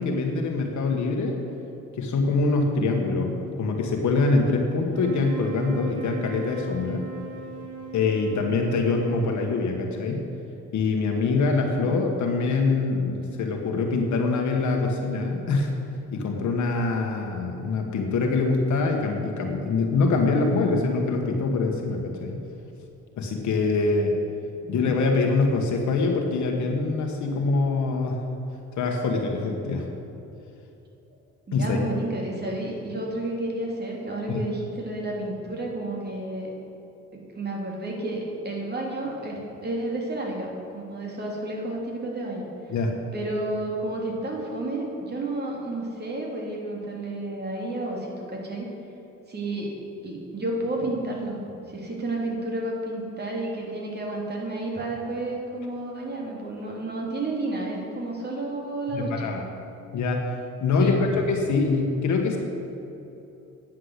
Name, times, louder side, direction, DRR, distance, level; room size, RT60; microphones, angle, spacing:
voice 1, 0.0-1.4 2.0-3.3 3.6-7.1 7.9-10.3 10.7-15.8 16.1-22.4 23.2-24.2 24.7-28.2 28.7-29.9 31.5-31.8 34.3-34.4 42.7-42.9 58.9-59.4 59.9-60.3 60.6-62.4, left 3 dB, 70° left, 2 dB, 1.5 m, -24 dB
sound 1, 4.8-10.3, right 6 dB, 85° right, 1.8 m, -39 dB
voice 2, 31.5-36.5 37.1-42.5 43.1-48.7 49.3-49.7 50.0-51.4 51.7-59.3 60.8-61.0, right 2 dB, 35° right, -2 dB, 3.1 m, -31 dB
10.0 x 7.5 x 8.1 m, 2.9 s
cardioid pair, 90°, 30 cm